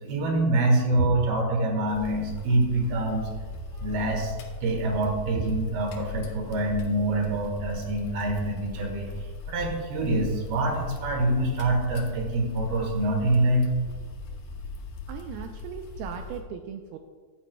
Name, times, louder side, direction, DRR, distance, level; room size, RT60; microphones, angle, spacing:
voice 1, 0.0-3.3 3.7-4.3 4.6-9.1 9.5-13.6, right 2 dB, 70° right, 2 dB, 3.2 m, -25 dB
sound 1, 1.9-16.4, left 3 dB, 75° left, 1.7 m, -39 dB
voice 2, 15.1-17.0, right 8 dB, 90° right, 5 dB, 2.2 m, -38 dB
14.0 x 11.0 x 2.2 m, 1.5 s
omnidirectional pair, 4.9 m